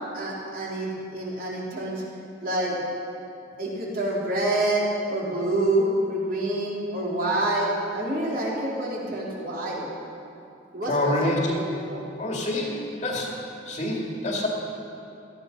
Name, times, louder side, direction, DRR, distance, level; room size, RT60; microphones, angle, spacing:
voice 1, 0.1-2.0 2.4-2.8 3.6-4.8 5.1-7.7 7.9-9.9 10.7-11.6 11.9-12.0, right 1 dB, 45° right, -5 dB, 3.6 m, -27 dB
voice 2, 10.9-11.5 12.2-13.4 13.7-14.5, left 1 dB, 35° left, -1 dB, 2.2 m, -26 dB
18.0 x 13.5 x 5.3 m, 2.8 s
head